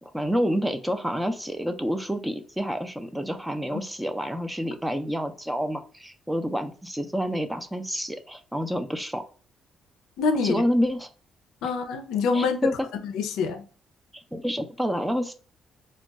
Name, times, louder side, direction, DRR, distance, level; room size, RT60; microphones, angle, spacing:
voice 1, 0.0-9.2 10.4-11.1 12.3-12.9 14.1-15.3, equal, 5° right, 0.4 m, -28 dB
voice 2, 10.2-10.6 11.6-12.7 13.0-13.7, left 4 dB, 90° left, 0.4 m, -26 dB
2.2 x 2.2 x 3.9 m
cardioid pair, 90°, 0 cm